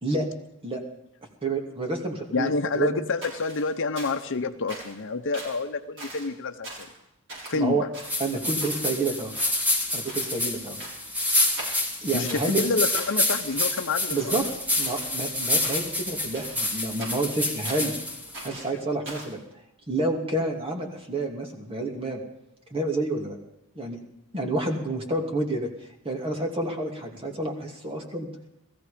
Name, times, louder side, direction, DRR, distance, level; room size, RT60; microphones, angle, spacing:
voice 1, 1.4-3.0 7.5-7.9 8.2-9.3 9.9-10.8 12.0-12.6 14.1-14.4 14.8-18.0 18.4-19.4 19.9-22.2 22.7-23.4 23.8-24.0 24.3-25.7 26.0-28.3, right 2 dB, 25° right, 1 dB, 2.6 m, -29 dB
voice 2, 2.3-6.9 7.5-7.9 12.1-14.3, left 4 dB, 60° left, 8 dB, 0.9 m, -28 dB
sound 1, 3.2-4.3 4.7-5.0 5.3-5.6 6.0-6.3 6.6-7.0 7.3-7.6 7.9-9.0 9.3-9.8 10.0-10.4 10.8-11.2 11.6-12.5 12.9-13.9 14.1-15.2 15.6-16.0 16.3-18.0 18.3-19.4, right 2 dB, 60° right, 6.9 m, -41 dB
sound 2, 8.0-18.5, left 1 dB, 5° right, 2.4 m, -28 dB
17.5 x 15.0 x 5.2 m, 0.85 s
head